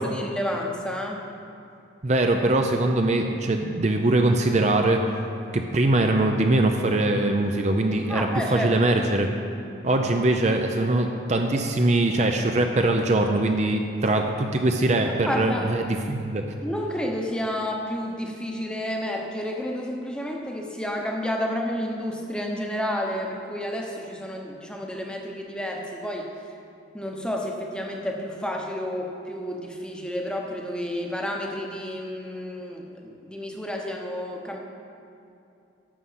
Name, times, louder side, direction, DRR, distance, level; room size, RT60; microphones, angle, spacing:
voice 1, 0.0-1.2 8.1-8.7 15.2-15.7 16.6-26.3 26.9-34.6, left 1 dB, 5° left, 1 dB, 0.9 m, -30 dB
voice 2, 2.0-5.0 5.5-9.3 9.8-16.4, right 2 dB, 35° right, 4 dB, 0.5 m, -22 dB
11.0 x 7.2 x 5.7 m, 2.7 s
head